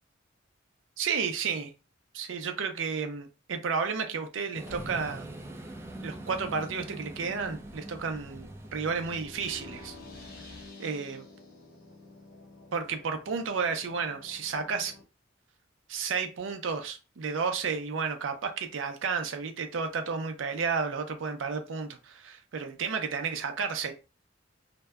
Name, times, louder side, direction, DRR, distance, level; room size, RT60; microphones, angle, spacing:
voice 1, 1.0-1.7 2.1-5.3 6.0-10.0 10.8-11.2 12.7-14.9 15.9-23.9, right 5 dB, 85° right, 0.5 m, -32 dB
sound 1, 4.5-10.7, right 1 dB, 15° right, 0.3 m, -44 dB
sound 2, 4.7-7.2, right 1 dB, 85° left, 1.0 m, -49 dB
sound 3, 9.0-15.0, left 3 dB, 50° left, 0.6 m, -50 dB
2.6 x 2.1 x 2.2 m
head